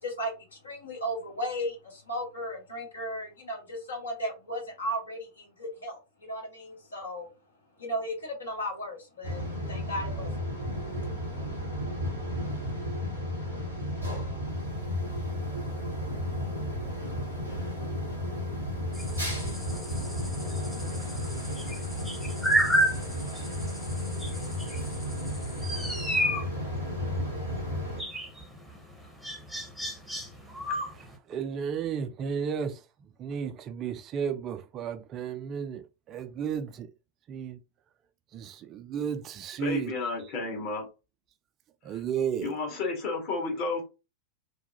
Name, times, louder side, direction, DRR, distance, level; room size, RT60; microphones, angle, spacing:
voice 1, 0.0-7.3 7.8-10.5, equal, 70° left, 1.3 m, -35 dB
sound 1, 9.2-28.0, left 1 dB, 85° left, 1.2 m, -33 dB
sound 2, 18.9-31.1, right 1 dB, ahead, 0.8 m, -32 dB
voice 2, 30.6-32.9 33.2-36.9 37.3-37.6 38.3-40.2 41.8-42.5, right 7 dB, 30° right, 0.3 m, -33 dB
voice 3, 39.6-40.9 42.4-43.8, left 3 dB, 40° left, 1.3 m, -31 dB
3.3 x 2.2 x 2.8 m
figure-of-eight pair, 90°, 0 cm